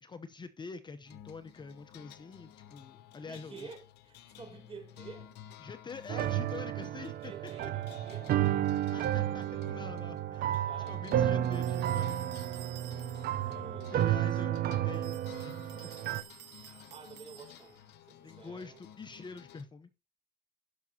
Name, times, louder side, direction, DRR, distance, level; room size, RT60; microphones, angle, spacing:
voice 1, 0.0-3.7 5.6-7.3 7.6-7.7 8.9-12.3 13.9-16.0 18.2-19.9, left 4 dB, 25° left, 0.8 m, -46 dB
sound 1, 1.1-19.6, left 10 dB, 80° left, 0.9 m, -53 dB
voice 2, 3.2-5.3 7.2-9.7 10.6-11.1 13.0-13.2 13.4-14.2 16.9-18.8, right 5 dB, 35° right, 4.6 m, -51 dB
sound 2, 6.1-16.2, right 12 dB, 65° right, 0.7 m, -32 dB
sound 3, 11.5-13.5 14.9-17.8, right 14 dB, 90° right, 1.0 m, -52 dB
17.0 x 6.0 x 2.8 m
cardioid pair, 110°, 17 cm